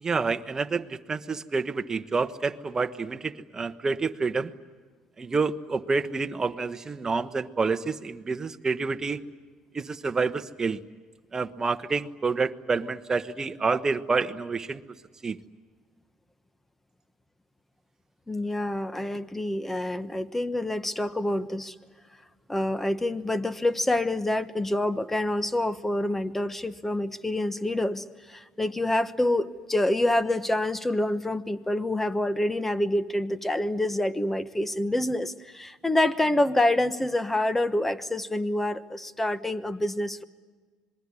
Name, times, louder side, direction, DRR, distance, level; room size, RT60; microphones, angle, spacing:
voice 1, 0.0-4.5 5.2-9.2 9.7-10.8 11.3-14.8 15.2-15.4, right 4 dB, 25° right, 10 dB, 1.1 m, -28 dB
voice 2, 18.3-21.7 22.5-40.2, left 1 dB, 10° left, 14 dB, 1.2 m, -27 dB
26.5 x 21.5 x 9.8 m, 1.5 s
cardioid pair, 115°, 2 cm